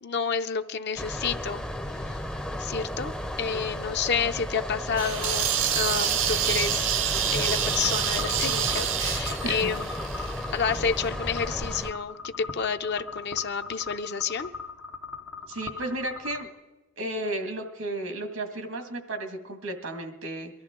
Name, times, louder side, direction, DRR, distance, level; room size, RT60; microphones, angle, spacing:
voice 1, 0.0-1.6 1.9-2.2 2.6-3.1 3.4-6.9 7.3-9.9 10.5-14.5, left 6 dB, 55° left, 8 dB, 0.6 m, -29 dB
sound 1, 1.0-11.9, equal, 5° left, 0.5 m, -34 dB
sound 2, 5.0-10.8, right 9 dB, 65° right, 0.7 m, -27 dB
sound 3, 7.6-16.5, left 4 dB, 80° left, 0.9 m, -40 dB
voice 2, 15.5-16.5 17.0-20.5, right 1 dB, 90° right, 5 dB, 2.0 m, -33 dB
23.0 x 13.5 x 3.7 m, 1.1 s
head